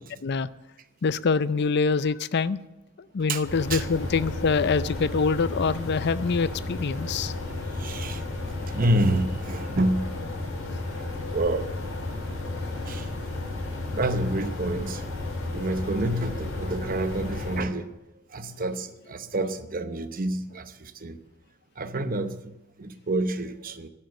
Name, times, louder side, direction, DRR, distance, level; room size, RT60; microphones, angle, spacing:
voice 1, 1.0-2.6 3.1-7.3, left 5 dB, 50° left, 16 dB, 0.4 m, -25 dB
sound 1, 3.4-17.6, left 2 dB, 70° left, 3.8 m, -33 dB
voice 2, 7.8-8.2 8.7-10.1 11.3-11.7 12.9-13.1 13.9-15.0 15.5-17.9 18.3-21.2 21.8-23.9, right 1 dB, 40° right, 10 dB, 0.8 m, -28 dB
12.0 x 10.0 x 8.1 m, 1.0 s
head